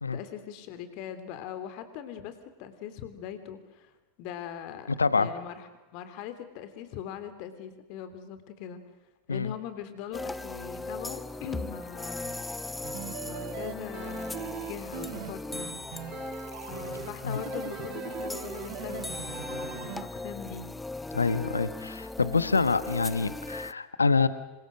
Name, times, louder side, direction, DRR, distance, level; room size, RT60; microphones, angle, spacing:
voice 1, 0.1-3.9 4.2-8.8 9.3-12.4 13.2-16.1 16.7-20.7, left 8 dB, 50° left, 10 dB, 3.3 m, -41 dB
voice 2, 5.0-5.3 9.3-9.5 17.2-17.4 21.1-24.3, left 4 dB, 80° left, 14 dB, 1.3 m, -26 dB
sound 1, 10.1-23.7, left 2 dB, 10° left, 1.1 m, -38 dB
sound 2, 12.8-20.0, right 12 dB, 50° right, 2.4 m, -40 dB
27.5 x 26.0 x 6.4 m, 1.1 s
figure-of-eight pair, 90°, 0 cm